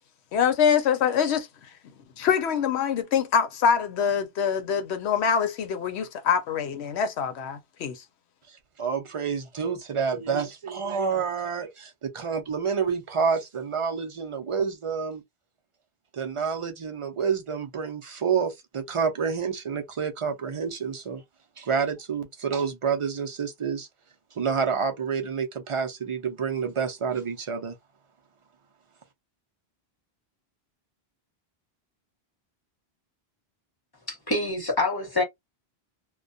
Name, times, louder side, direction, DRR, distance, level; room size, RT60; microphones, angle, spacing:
voice 1, 0.3-1.5 2.2-8.0, left 7 dB, 90° left, 0.9 m, -24 dB
voice 2, 8.8-15.2 16.1-21.2 21.6-23.9 24.4-27.7, right 6 dB, 45° right, 0.4 m, -28 dB
voice 3, 34.1-35.2, left 2 dB, 25° left, 0.9 m, -26 dB
2.3 x 2.1 x 2.5 m
omnidirectional pair, 1.1 m